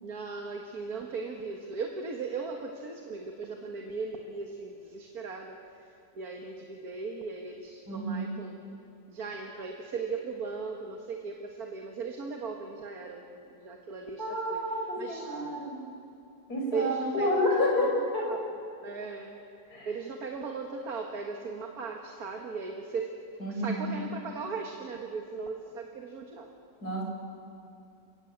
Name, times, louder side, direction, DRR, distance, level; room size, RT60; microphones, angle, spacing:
voice 1, 0.0-5.6 6.1-8.6 9.1-13.3 13.5-15.3 16.7-18.4 18.8-19.4 19.9-23.2 23.5-26.5, right 4 dB, 55° right, 2 dB, 2.0 m, -38 dB
voice 2, 7.9-8.3 14.2-15.8 16.5-18.2 19.7-19.9 23.4-23.9 26.8-27.0, left 1 dB, 60° left, -1 dB, 6.0 m, -29 dB
27.5 x 17.0 x 8.5 m, 2.5 s
omnidirectional pair, 1.9 m